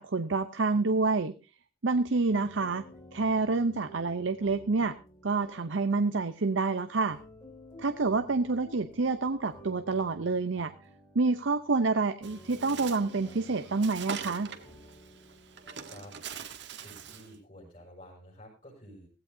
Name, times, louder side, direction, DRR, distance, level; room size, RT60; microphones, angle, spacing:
voice 1, 0.0-1.3 1.8-2.8 3.1-4.9 5.2-7.2 7.8-10.7 11.1-14.5, right 3 dB, 85° right, 10 dB, 0.7 m, -28 dB
sound 1, 2.3-16.3, equal, 20° left, 3.8 m, -52 dB
Bird, 12.2-17.3, right 6 dB, 65° right, 1.4 m, -43 dB
voice 2, 16.7-19.1, equal, 40° left, -4 dB, 5.9 m, -50 dB
17.0 x 16.0 x 2.7 m, 0.33 s
head